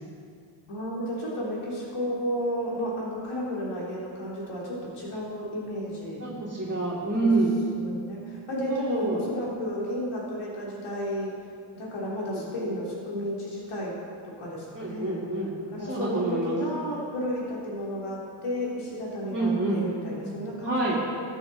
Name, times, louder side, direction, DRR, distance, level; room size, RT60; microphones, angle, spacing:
voice 1, 0.7-6.2 7.2-7.3 7.7-11.3 11.7-14.0 14.2-15.2 15.7-21.0, equal, 80° left, -5 dB, 3.2 m, -32 dB
voice 2, 6.2-7.6 8.7-9.2 12.3-12.7 14.7-15.5 15.8-16.6 19.3-19.8 20.6-21.0, right 2 dB, 25° right, -8 dB, 2.9 m, -27 dB
14.0 x 8.9 x 4.1 m, 2.3 s
cardioid pair, 55°, 50 cm